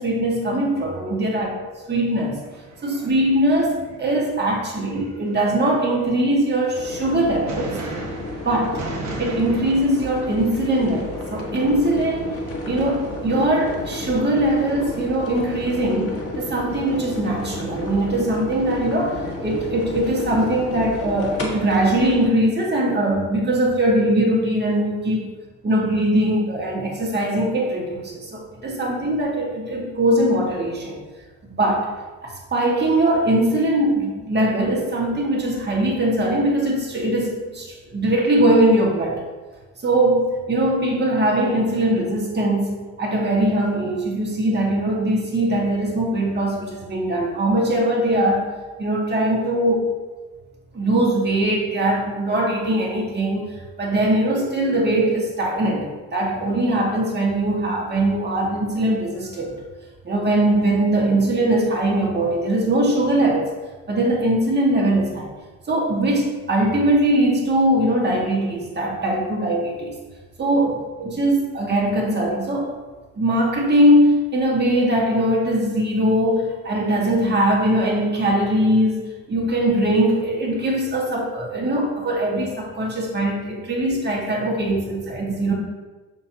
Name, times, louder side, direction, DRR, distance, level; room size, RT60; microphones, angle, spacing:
voice 1, 0.0-1.5 1.9-2.4 2.8-7.8 8.4-8.7 9.2-19.2 19.4-25.3 25.6-31.0 31.5-31.9 32.2-39.2 39.8-48.5 48.8-49.9 50.7-59.6 60.0-63.5 63.9-65.3 65.7-69.9 70.4-72.7 73.2-85.5, right 1 dB, 35° right, -2 dB, 1.9 m, -21 dB
sound 1, 2.4-4.6 4.8-7.2 7.5-11.4 11.8-13.5, right 3 dB, 65° right, 1.4 m, -37 dB
sound 2, 6.7-22.3, left 2 dB, 50° left, 1.5 m, -32 dB
6.5 x 5.8 x 2.9 m, 1.2 s
cardioid pair, 90°, 30 cm